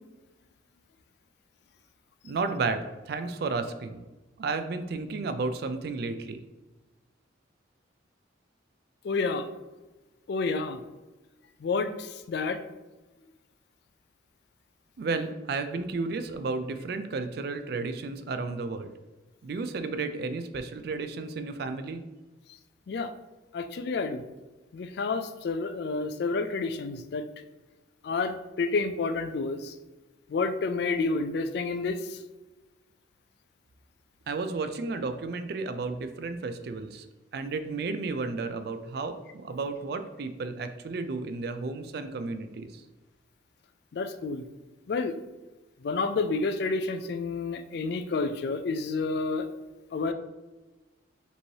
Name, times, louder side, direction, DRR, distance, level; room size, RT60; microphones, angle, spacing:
voice 1, 2.2-4.0 4.4-6.4 15.0-18.9 19.4-22.1 34.3-37.1 37.3-42.8, right 3 dB, 50° right, 9 dB, 0.3 m, -32 dB
voice 2, 9.0-9.5 10.3-10.8 11.6-12.6 22.9-23.1 23.5-24.2 24.7-27.2 28.0-29.7 30.3-32.2 43.9-44.4 44.9-45.1 45.8-49.5 49.9-50.1, left 3 dB, 55° left, 9 dB, 0.3 m, -29 dB
5.2 x 3.1 x 2.7 m, 1.2 s
head